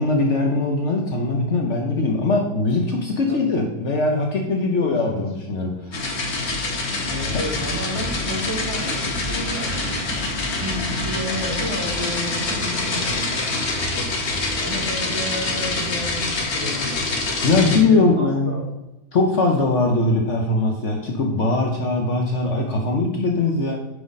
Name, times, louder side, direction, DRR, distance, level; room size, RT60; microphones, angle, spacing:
voice 1, 0.0-6.0 7.3-7.4 10.9-11.0 17.4-18.5 19.1-23.8, left 3 dB, 55° left, 1 dB, 1.1 m, -21 dB
voice 2, 4.8-5.3 7.1-14.1 14.6-17.0 17.8-18.7 23.6-23.8, equal, 20° right, -6 dB, 2.4 m, -31 dB
sound 1, 5.9-17.8, left 2 dB, 90° left, 1.9 m, -25 dB
9.3 x 5.1 x 4.0 m, 0.98 s
omnidirectional pair, 1.5 m